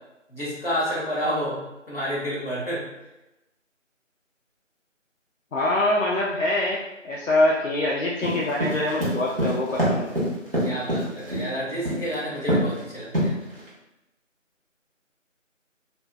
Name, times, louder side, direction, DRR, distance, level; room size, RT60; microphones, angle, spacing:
voice 1, 0.3-1.6 1.9-2.9 10.6-13.3, equal, 45° left, -7 dB, 1.3 m, -29 dB
voice 2, 5.5-10.1, left 1 dB, 75° left, -4 dB, 0.6 m, -24 dB
sound 1, 8.2-11.5 11.8-12.2 12.5-12.8 13.1-13.7, equal, 45° right, 1.2 m, -24 dB
3.3 x 3.0 x 2.2 m, 0.98 s
figure-of-eight pair, 175°, 39 cm